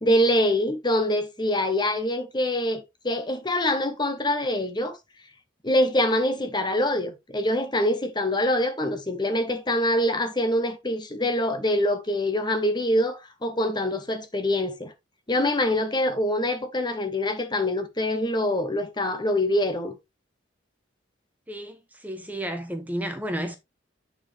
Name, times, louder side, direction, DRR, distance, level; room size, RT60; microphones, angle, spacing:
voice 1, 0.0-5.0 5.6-14.9 15.3-19.9, left 1 dB, 20° left, 1.1 m, -25 dB
voice 2, 21.5-23.6, equal, 10° right, 1.0 m, -32 dB
9.6 x 4.4 x 3.5 m
head